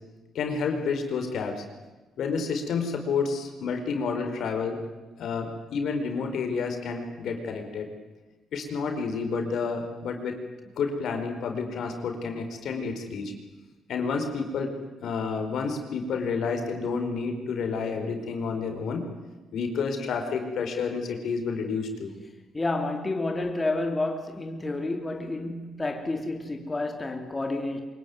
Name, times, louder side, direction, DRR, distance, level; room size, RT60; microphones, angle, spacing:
voice 1, 0.3-1.6 2.2-4.8 5.2-7.9 8.5-10.4 10.7-13.3 13.9-14.7 15.0-19.0 19.5-22.1, left 5 dB, 70° left, 4.6 m, -30 dB
voice 2, 22.5-27.8, left 2 dB, 20° left, 3.1 m, -30 dB
24.5 x 22.5 x 9.7 m
cardioid pair, 90°, 0 cm